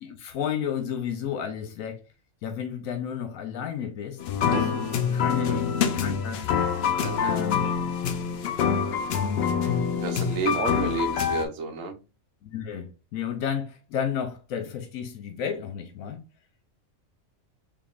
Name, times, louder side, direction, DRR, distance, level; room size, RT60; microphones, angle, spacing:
voice 1, 0.0-2.1 2.4-4.2 4.4-6.5 7.2-7.7 8.7-9.5 12.4-16.2, left 8 dB, 80° left, 1.0 m, -32 dB
sound 1, 4.2-11.4, left 7 dB, 65° left, 0.7 m, -26 dB
sound 2, 4.5-10.4 10.9-11.3, equal, 50° right, 1.6 m, -41 dB
voice 2, 10.0-12.0, right 4 dB, 75° right, 1.1 m, -30 dB
3.6 x 3.5 x 2.3 m
omnidirectional pair, 1.4 m